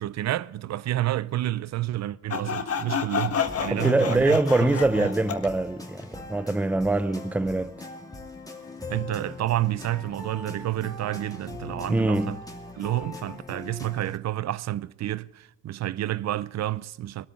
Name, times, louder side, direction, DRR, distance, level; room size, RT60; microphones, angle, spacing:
voice 1, 0.0-4.7 5.0-5.1 8.9-12.4 12.8-17.3, right 14 dB, 60° right, 0.6 m, -29 dB
Sawing, 2.3-5.5, left 7 dB, 50° left, 1.6 m, -29 dB
sound 1, 3.3-14.2, left 2 dB, 10° left, 2.6 m, -41 dB
voice 2, 3.7-7.7 11.9-12.4, right 2 dB, 5° right, 0.6 m, -23 dB
20.5 x 13.0 x 3.7 m
cardioid pair, 90°, 30 cm